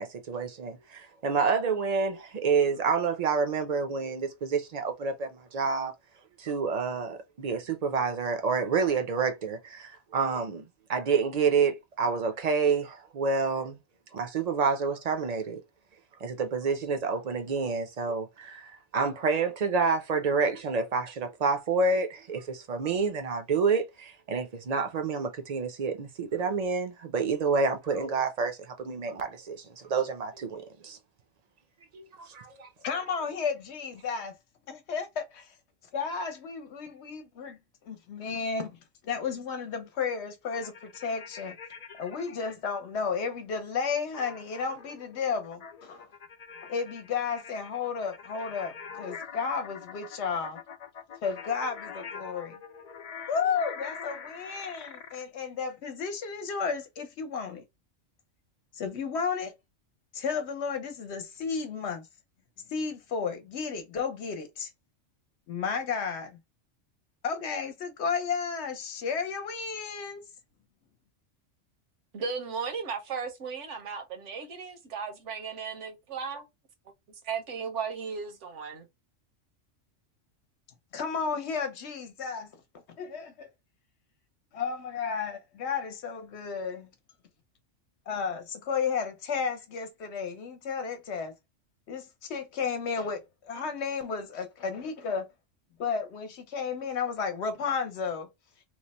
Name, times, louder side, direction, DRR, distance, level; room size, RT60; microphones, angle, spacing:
voice 1, 0.0-5.9 6.4-13.8 14.1-15.6 16.2-31.0 31.9-32.7, right 5 dB, 45° right, 0.6 m, -28 dB
voice 2, 32.8-34.3 34.7-35.5 35.9-38.8 39.0-41.6 42.0-46.1 46.6-50.6 51.2-52.6 53.3-57.6 58.7-59.5 60.1-62.1 62.7-64.7 65.5-66.4 67.2-70.2 80.9-82.6 83.0-83.5 84.5-86.9 88.1-91.3 91.9-95.3 95.8-98.3, left 5 dB, 65° left, 1.1 m, -33 dB
sound 1, 40.5-42.5 44.1-55.2, left 6 dB, 80° left, 0.3 m, -44 dB
voice 3, 72.1-76.5 77.2-78.9, right 5 dB, 70° right, 1.2 m, -35 dB
3.1 x 2.1 x 4.1 m
omnidirectional pair, 1.3 m